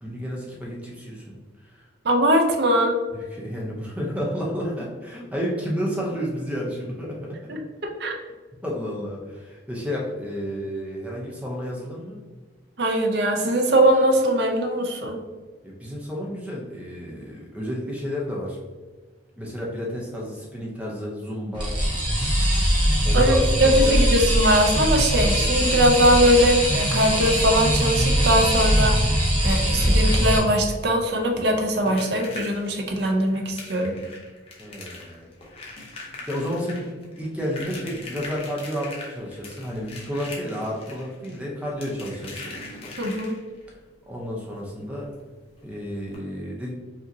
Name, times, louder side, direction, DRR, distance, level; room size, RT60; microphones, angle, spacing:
voice 1, 0.0-1.4 1.6-1.8 3.1-7.6 8.6-12.2 15.6-18.6 19.4-21.7 23.0-24.0 34.6-35.3 36.3-36.9 37.2-42.4 44.1-45.1 45.6-46.7, equal, 5° right, -3 dB, 0.7 m, -31 dB
voice 2, 2.0-2.9 7.5-8.1 12.8-15.2 23.1-23.3 23.6-29.0 29.4-34.0 43.0-43.4, equal, 55° right, 3 dB, 0.6 m, -21 dB
sound 1, 21.5-30.4, equal, 25° right, 1.0 m, -21 dB
sound 2, 31.1-43.7 45.1-45.2 45.5-45.6 46.1-46.2, left 2 dB, 30° left, 0.8 m, -41 dB
5.0 x 2.8 x 2.7 m, 1.4 s
head